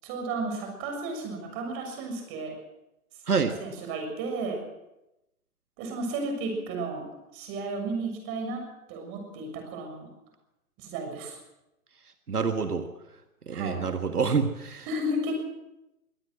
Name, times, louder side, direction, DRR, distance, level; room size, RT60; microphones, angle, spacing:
voice 1, 0.0-2.5 3.6-4.6 5.8-7.1 7.3-8.6 8.9-10.1 10.8-11.4 13.5-13.8 14.9-15.3, right 2 dB, 30° right, 4 dB, 6.8 m, -33 dB
voice 2, 12.3-12.9 13.5-14.8, right 5 dB, 80° right, 7 dB, 1.7 m, -27 dB
23.5 x 17.5 x 6.3 m, 0.91 s
figure-of-eight pair, 125°, 45 cm